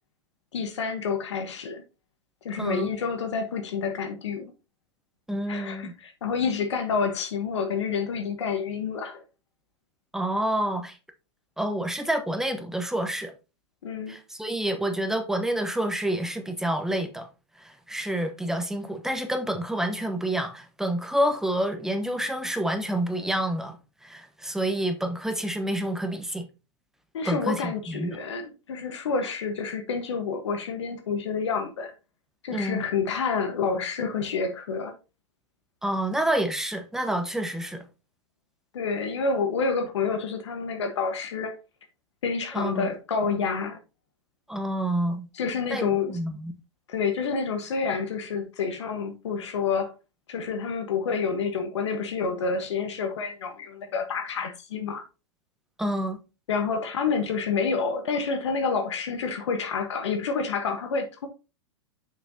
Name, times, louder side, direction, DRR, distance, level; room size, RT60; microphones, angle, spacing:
voice 1, 0.5-1.8 2.4-4.5 5.5-9.2 13.8-14.2 27.1-31.9 32.4-34.9 38.7-41.6 42.2-43.8 45.3-46.2 46.9-49.9 50.3-55.0 56.5-61.3, left 5 dB, 75° left, 1.3 m, -28 dB
voice 2, 2.6-2.9 5.3-5.9 10.1-11.0 11.6-13.3 14.1-17.3 17.6-23.8 24.0-26.5 27.2-28.2 32.5-32.8 35.8-37.8 42.5-42.9 44.5-45.3 45.7-46.5 55.8-56.2, right 1 dB, 5° right, 1.0 m, -28 dB
6.8 x 5.7 x 2.8 m
hypercardioid pair, 105°, 15 cm